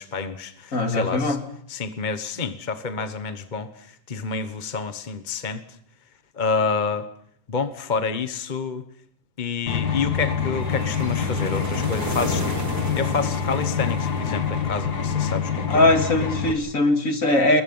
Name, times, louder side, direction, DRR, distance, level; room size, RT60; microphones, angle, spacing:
voice 1, 0.0-1.4 1.7-5.6 6.3-7.1 7.5-8.8 9.4-15.8, left 5 dB, 30° left, 10 dB, 1.1 m, -28 dB
voice 2, 0.7-1.4 15.7-17.6, left 2 dB, 55° left, 6 dB, 2.7 m, -20 dB
sound 1, 9.7-16.5, left 6 dB, 85° left, 2.4 m, -26 dB
sound 2, 10.5-14.7, right 2 dB, 90° right, 4.2 m, -34 dB
28.0 x 22.0 x 5.5 m, 0.64 s
omnidirectional pair, 1.7 m